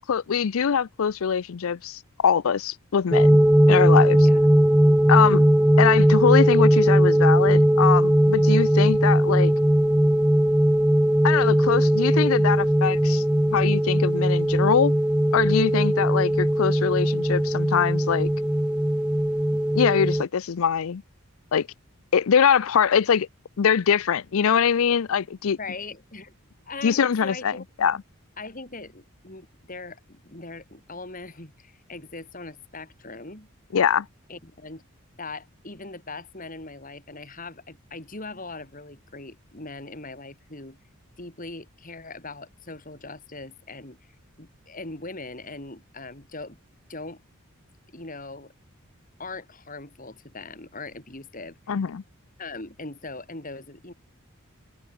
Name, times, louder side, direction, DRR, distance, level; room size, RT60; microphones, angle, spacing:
voice 1, 0.1-3.4 3.7-4.3 5.1-5.4 5.8-9.5 11.2-14.9 15.3-18.3 19.7-21.0 21.5-21.7 22.1-23.3 23.6-25.6 26.8-28.0 33.7-34.1 51.7-52.0, left 7 dB, 70° left, 0.5 m, -23 dB
sound 1, 3.1-20.2, right 1 dB, 5° right, 0.3 m, -19 dB
voice 2, 4.2-4.6 25.6-26.4 26.7-27.6 28.4-33.5 34.3-34.8 35.2-40.8 41.2-44.0 44.4-46.6 46.9-47.2 47.9-48.5 49.2-51.8 52.4-53.9, left 3 dB, 40° left, 3.8 m, -40 dB
head